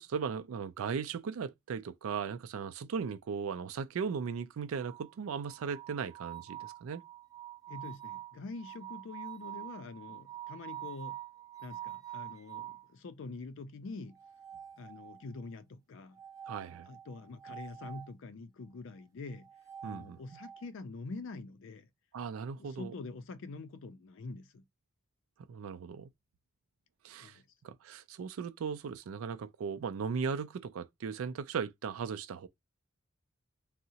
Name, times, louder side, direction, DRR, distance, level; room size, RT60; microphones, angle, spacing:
voice 1, 0.0-7.0 16.5-16.9 19.8-20.2 22.1-22.9 25.5-26.1 27.0-32.5, right 6 dB, 80° right, 0.4 m, -37 dB
sound 1, 4.8-12.9 14.1-15.4 16.1-18.1 19.3-20.7, right 12 dB, 15° right, 0.4 m, -46 dB
voice 2, 7.7-11.2 11.6-14.2 14.8-16.2 16.9-19.5 19.8-21.9 22.5-24.6 27.1-27.4, left 3 dB, 65° left, 0.4 m, -45 dB
3.6 x 2.0 x 2.7 m
head